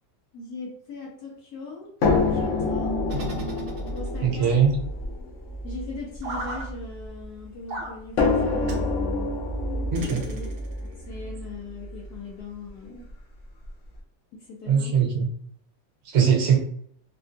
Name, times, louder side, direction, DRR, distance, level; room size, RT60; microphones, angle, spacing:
voice 1, 0.3-3.0 3.9-4.6 5.6-9.4 9.7-10.5 10.8-13.1 14.3-15.0, left 4 dB, 75° left, -3 dB, 1.3 m, -40 dB
sound 1, 2.0-7.2 8.2-12.1 13.1-13.2 13.6-13.7, left 3 dB, 60° left, 1.0 m, -27 dB
sound 2, 3.1-4.3 6.2-6.7 7.7-8.0 8.7-8.9 9.9-10.8, right 1 dB, 85° right, 0.5 m, -35 dB
voice 2, 4.2-4.7 9.9-10.2 14.7-15.3 16.1-16.6, right 7 dB, 55° right, 1 dB, 0.8 m, -20 dB
3.4 x 2.3 x 2.5 m, 0.65 s
omnidirectional pair, 1.7 m